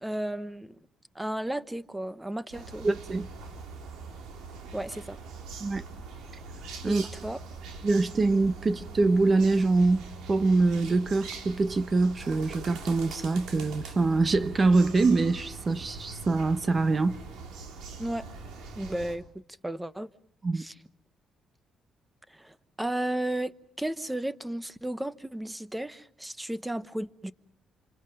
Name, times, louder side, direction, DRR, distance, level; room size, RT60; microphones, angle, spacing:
voice 1, 0.0-0.8 1.1-2.9 4.7-5.2 6.8-7.4 18.0-18.3 18.7-19.3 19.6-20.1 20.5-20.7 22.3-27.3, right 1 dB, 10° right, 1.1 m, -34 dB
sound 1, 2.5-19.2, right 3 dB, 85° right, 3.7 m, -42 dB
voice 2, 2.8-3.3 5.6-5.8 6.8-7.0 7.8-17.2 20.4-20.6, right 3 dB, 35° right, 1.0 m, -24 dB
27.0 x 26.0 x 5.4 m
cardioid pair, 90°, 0 cm